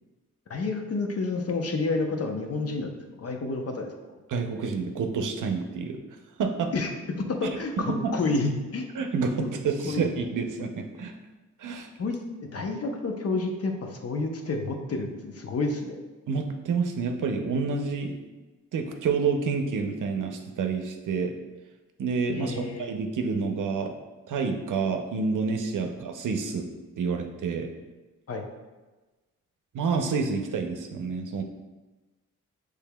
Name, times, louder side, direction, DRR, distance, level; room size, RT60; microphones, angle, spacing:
voice 1, 0.5-3.9 6.7-6.9 7.2-8.8 9.4-9.5 9.9-10.1 12.0-12.2 12.5-16.0 22.3-22.9 28.3-28.4, left 3 dB, 50° left, 3 dB, 0.7 m, -29 dB
voice 2, 4.3-6.0 6.4-6.7 7.9-8.1 9.0-11.1 11.6-11.9 16.3-18.2 18.7-21.3 22.0-23.9 24.3-26.7 27.0-27.7 29.7-31.4, right 5 dB, 75° right, 5 dB, 0.6 m, -28 dB
6.7 x 3.3 x 2.3 m, 1.2 s
cardioid pair, 80°, 31 cm